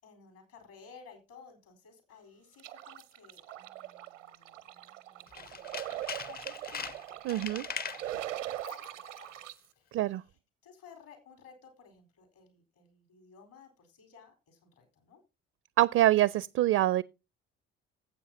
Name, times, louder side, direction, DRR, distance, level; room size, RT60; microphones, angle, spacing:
voice 1, 0.0-7.0 7.3-9.5 9.8-15.2, left 6 dB, 65° left, 4.2 m, -56 dB
sound 1, 2.6-9.5, right 13 dB, 85° right, 0.7 m, -41 dB
Tools, 5.3-8.1 8.6-8.9 9.2-9.3, left 6 dB, 25° left, 0.6 m, -41 dB
voice 2, 7.3-7.6 9.9-10.2 15.8-17.0, right 14 dB, 40° right, 0.4 m, -25 dB
15.0 x 8.0 x 2.8 m
figure-of-eight pair, 50°, 36 cm